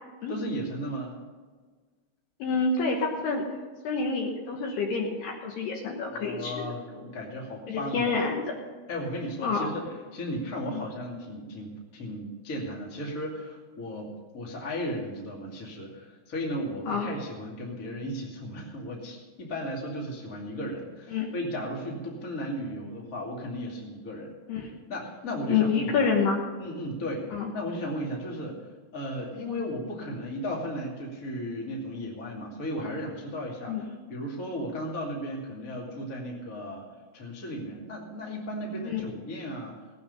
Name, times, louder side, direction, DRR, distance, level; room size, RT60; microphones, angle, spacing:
voice 1, 0.3-1.1 5.9-8.2 8.9-24.3 24.9-26.1 26.6-28.7 28.9-36.8 37.1-39.8, equal, 35° left, -2 dB, 1.4 m, -35 dB
voice 2, 2.4-3.5 3.8-6.6 7.7-8.5 9.4-9.7 10.7-10.8 16.8-17.1 21.1-21.3 24.5-24.7 25.5-26.4 27.3-27.5 33.7-33.9 38.8-39.0, left 5 dB, 70° left, 1 dB, 2.8 m, -27 dB
18.0 x 9.0 x 5.5 m, 1.4 s
omnidirectional pair, 5.7 m